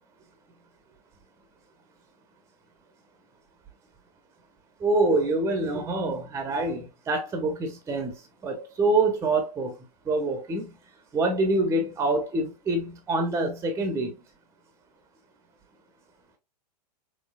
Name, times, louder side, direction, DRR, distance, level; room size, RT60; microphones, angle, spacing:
voice 1, 4.8-8.2 8.4-9.7 10.1-10.7 11.1-14.2, right 2 dB, 15° right, 0.8 m, -26 dB
5.5 x 3.2 x 2.3 m
figure-of-eight pair, 100°, 21 cm